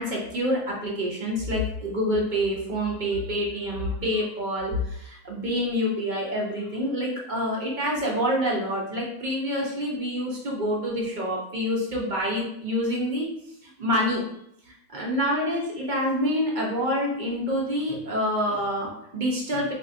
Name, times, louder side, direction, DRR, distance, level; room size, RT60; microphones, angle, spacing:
voice 1, 0.0-13.3 13.6-14.2 14.7-19.7, equal, 40° right, -3 dB, 0.7 m, -27 dB
4.1 x 3.2 x 2.5 m, 0.76 s
omnidirectional pair, 1.7 m